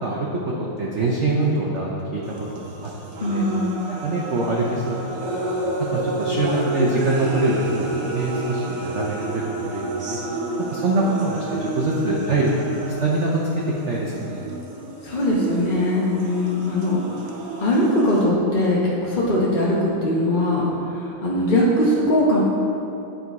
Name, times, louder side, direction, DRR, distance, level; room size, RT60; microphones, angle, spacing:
voice 1, 0.0-3.4 3.9-5.0 5.4-5.6 5.9-10.2 10.6-12.5 12.8-13.4 13.9-14.4, right 2 dB, 85° right, -3 dB, 0.6 m, -24 dB
sound 1, 2.2-18.2, right 1 dB, 55° right, 1.1 m, -30 dB
voice 2, 3.2-3.8 15.0-17.0 17.6-22.4, left 1 dB, 40° left, -6 dB, 0.7 m, -21 dB
10.0 x 3.9 x 4.6 m, 2.8 s
omnidirectional pair, 2.2 m